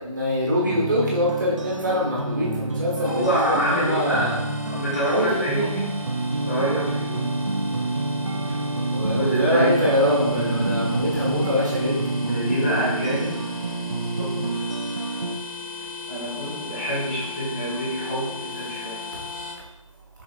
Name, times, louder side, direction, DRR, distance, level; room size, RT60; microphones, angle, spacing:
voice 1, 0.1-4.4 5.1-5.7 8.9-12.0, equal, 35° right, -5 dB, 1.2 m, -24 dB
sound 1, 0.5-15.4, right 2 dB, 60° right, 0.6 m, -28 dB
sound 2, 3.0-19.5, left 2 dB, 80° left, 1.5 m, -37 dB
voice 2, 3.0-4.3 4.7-5.8 6.5-7.3 9.0-9.7 12.3-13.3 14.2-14.8 16.1-19.0, right 1 dB, 20° left, -7 dB, 1.1 m, -26 dB
6.2 x 3.8 x 2.2 m, 0.92 s
figure-of-eight pair, 160°, 18 cm